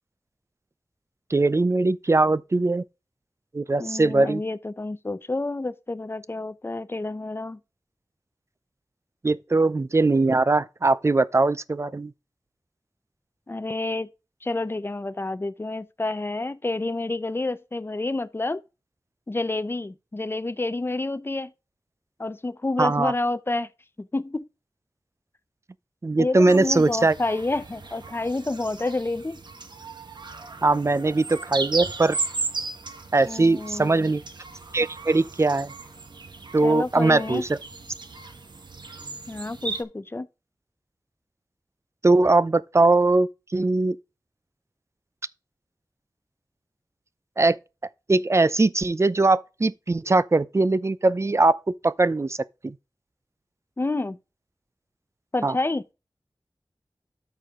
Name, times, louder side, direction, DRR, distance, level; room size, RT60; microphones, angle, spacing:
voice 1, 1.3-2.8 3.5-4.4 9.2-12.1 22.8-23.1 26.0-27.2 30.6-32.2 33.1-34.2 34.7-35.7 36.5-37.6 42.0-44.0 47.4-47.6 48.1-52.4 52.6-52.7 55.4-55.6, right 3 dB, 40° right, 0.6 m, -21 dB
voice 2, 3.8-7.6 13.5-14.1 14.4-18.6 19.3-21.5 22.2-23.7 24.0-24.4 26.2-29.4 33.3-34.1 36.6-37.4 39.3-40.3 53.8-54.2 55.3-55.8, left 2 dB, 30° left, 0.7 m, -29 dB
sound 1, 26.5-39.8, right 3 dB, 80° right, 1.4 m, -36 dB
13.0 x 4.7 x 3.7 m
wide cardioid pair, 75°, 8 cm